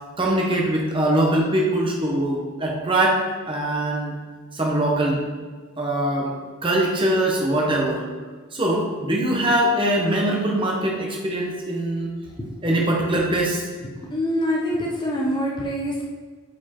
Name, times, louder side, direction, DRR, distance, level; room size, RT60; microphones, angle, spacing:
voice 1, 0.2-3.2 3.5-4.1 4.5-5.2 5.8-6.3 6.6-8.0 8.5-12.1 12.6-13.6, right 1 dB, 25° right, -1 dB, 1.0 m, -22 dB
voice 2, 14.1-16.0, equal, 20° left, -3 dB, 0.7 m, -25 dB
5.3 x 4.4 x 4.4 m, 1.5 s
head